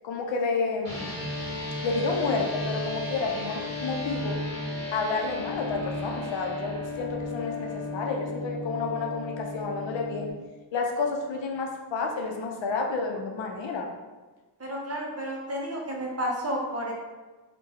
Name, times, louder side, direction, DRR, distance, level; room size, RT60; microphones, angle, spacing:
voice 1, 0.0-1.2 1.8-4.4 4.9-10.3 10.7-13.9, left 4 dB, 75° left, 2 dB, 0.6 m, -30 dB
sound 1, 0.8-10.3, left 2 dB, 35° left, 1.0 m, -34 dB
voice 2, 14.6-16.9, equal, 35° right, -2 dB, 0.6 m, -31 dB
3.7 x 2.2 x 2.7 m, 1.3 s
wide cardioid pair, 155°, 45 cm